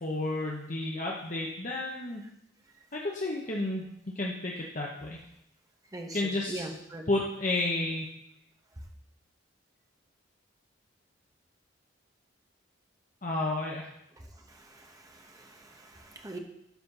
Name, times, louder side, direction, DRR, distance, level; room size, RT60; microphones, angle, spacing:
voice 1, 0.0-2.2 2.9-3.8 4.2-5.2 6.1-6.6 7.1-8.1 13.2-13.9, left 2 dB, 40° left, -2 dB, 1.0 m, -31 dB
voice 2, 5.9-7.0 14.5-16.4, right 2 dB, 20° right, 2 dB, 1.1 m, -42 dB
12.5 x 4.4 x 5.5 m, 0.80 s
head